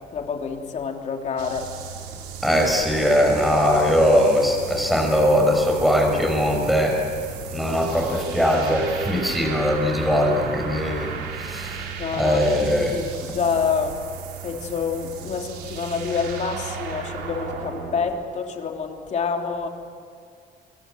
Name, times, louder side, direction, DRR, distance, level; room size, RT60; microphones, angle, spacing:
voice 1, 0.1-1.7 3.5-4.0 10.1-10.2 12.0-14.0 14.4-19.7, left 6 dB, 45° left, 2 dB, 3.4 m, -27 dB
sound 1, 1.4-18.1, right 7 dB, 90° right, 4.3 m, -35 dB
voice 2, 2.4-7.1 7.5-12.9, equal, ahead, 2 dB, 5.5 m, -21 dB
26.5 x 25.0 x 8.1 m, 2.2 s
cardioid pair, 110°, 17 cm